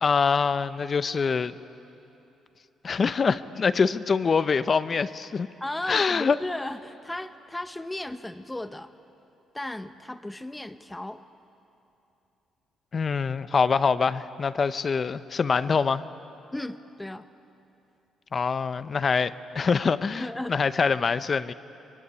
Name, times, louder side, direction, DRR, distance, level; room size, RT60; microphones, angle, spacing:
voice 1, 0.0-1.5 2.8-5.5 5.9-6.4 12.9-16.0 18.3-21.5, left 5 dB, 40° left, 13 dB, 0.8 m, -24 dB
voice 2, 5.6-8.9 9.5-11.2 16.5-17.3 20.2-20.6, left 1 dB, 10° left, 10 dB, 0.9 m, -35 dB
23.0 x 22.5 x 9.9 m, 2.9 s
cardioid pair, 90°, 0 cm